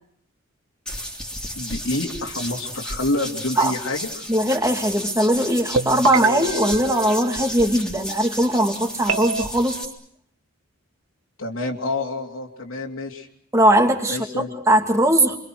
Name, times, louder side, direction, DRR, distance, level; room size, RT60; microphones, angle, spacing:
sound 1, 0.9-9.8, equal, 5° left, 3.4 m, -33 dB
voice 1, 1.5-4.3 11.4-13.3 14.1-14.5, left 2 dB, 70° left, 0 dB, 3.1 m, -28 dB
voice 2, 4.3-9.8 13.5-14.2 14.7-15.4, right 1 dB, 15° right, 3 dB, 2.8 m, -19 dB
sound 2, 5.7-7.9 9.1-9.5, right 3 dB, 80° right, 1.5 m, -26 dB
29.0 x 25.0 x 6.4 m, 0.68 s
head